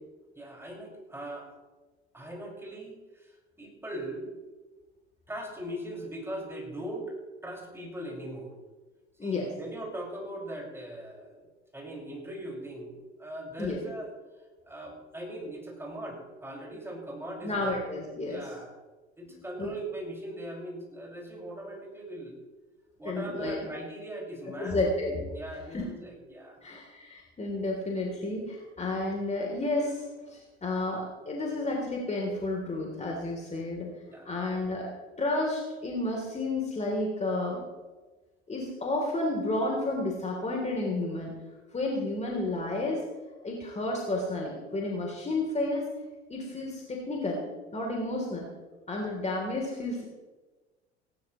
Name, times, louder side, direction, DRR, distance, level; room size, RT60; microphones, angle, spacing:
voice 1, 0.3-1.5 2.1-4.3 5.3-7.2 7.4-8.5 9.2-11.5 11.7-14.1 14.6-17.8 18.2-18.8 19.2-22.3 23.0-24.8 25.3-26.7 34.1-34.3, right 1 dB, 5° right, -1 dB, 5.6 m, -40 dB
voice 2, 17.4-18.4 19.3-19.7 23.0-23.6 24.6-25.2 25.7-25.9 26.6-33.9 34.2-34.9 35.2-37.6 38.5-41.3 41.7-43.0 43.4-45.8 46.3-47.4 47.7-48.5 48.9-50.0, left 2 dB, 20° left, 0 dB, 3.2 m, -31 dB
18.5 x 17.5 x 3.1 m, 1.2 s
figure-of-eight pair, 70°, 34 cm